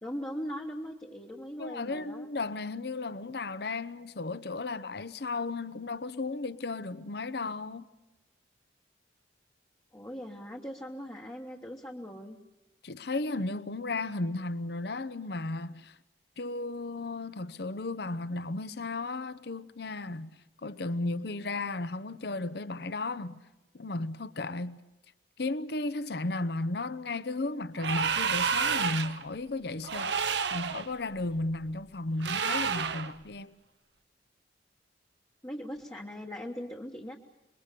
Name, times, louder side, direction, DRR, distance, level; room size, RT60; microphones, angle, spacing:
voice 1, 0.0-2.3 9.9-12.4 35.4-37.2, equal, 15° left, 1.2 m, -40 dB
voice 2, 1.6-7.9 12.8-16.0 16.4-20.3 20.6-23.4 23.7-24.8 25.4-33.5, left 2 dB, 60° left, 0.8 m, -34 dB
sound 1, 27.8-29.2 29.8-30.9 32.2-33.1, right 6 dB, 65° right, 0.8 m, -29 dB
26.5 x 22.5 x 6.8 m
head